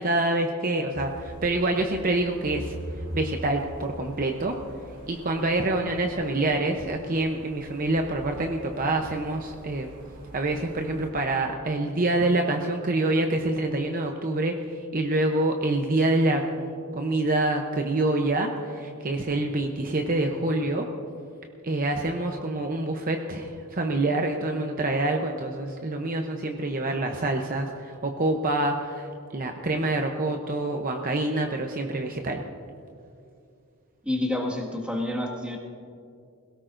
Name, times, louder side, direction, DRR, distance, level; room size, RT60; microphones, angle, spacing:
voice 1, 0.0-2.7 3.1-4.6 5.1-9.9 10.3-20.9 21.6-29.1 29.3-32.4, right 2 dB, 40° right, 4 dB, 0.8 m, -26 dB
A walk through Toronto's Koreantown, 0.9-11.1, equal, 60° right, 3.1 m, -42 dB
voice 2, 34.0-35.6, left 1 dB, 5° right, -3 dB, 1.8 m, -28 dB
21.5 x 17.5 x 2.6 m, 2.4 s
head